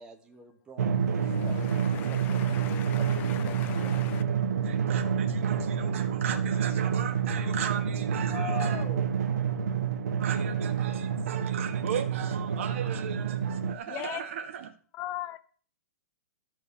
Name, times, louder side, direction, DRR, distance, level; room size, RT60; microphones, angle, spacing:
voice 1, 0.0-1.2 1.4-2.5 3.0-4.1, right 4 dB, 10° right, 1.2 m, -49 dB
Drum, 0.8-13.7, right 7 dB, 75° right, 1.1 m, -28 dB
voice 2, 1.1-4.2 8.3-9.1 13.9-14.2 14.9-15.4, left 12 dB, 20° left, 0.6 m, -39 dB
voice 3, 4.6-8.8 10.2-14.7, right 8 dB, 50° right, 1.6 m, -37 dB
13.0 x 4.5 x 7.0 m
hypercardioid pair, 165°, 9 cm